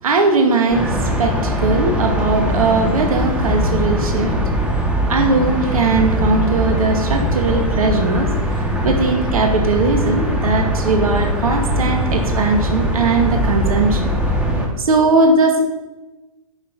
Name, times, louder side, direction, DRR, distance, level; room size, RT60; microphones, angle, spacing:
voice 1, 0.0-4.4 5.1-14.1 14.8-15.6, right 3 dB, 75° right, 4 dB, 2.1 m, -19 dB
sound 1, 0.7-14.7, equal, 5° right, 3.8 m, -20 dB
11.0 x 6.6 x 8.4 m, 1.1 s
hypercardioid pair, 110°, 19 cm